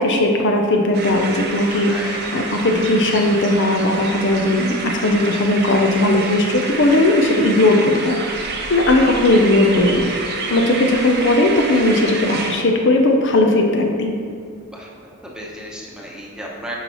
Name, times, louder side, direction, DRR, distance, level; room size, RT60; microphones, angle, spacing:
voice 1, 0.0-10.1 10.5-14.1, left 1 dB, 55° left, 2 dB, 0.6 m, -17 dB
sound 1, 0.9-12.5, right 3 dB, 50° right, 0.8 m, -28 dB
voice 2, 1.8-2.4 8.8-8.9 14.7-14.9 15.2-16.7, equal, 5° right, -4 dB, 1.0 m, -34 dB
9.5 x 5.5 x 3.0 m, 2.2 s
head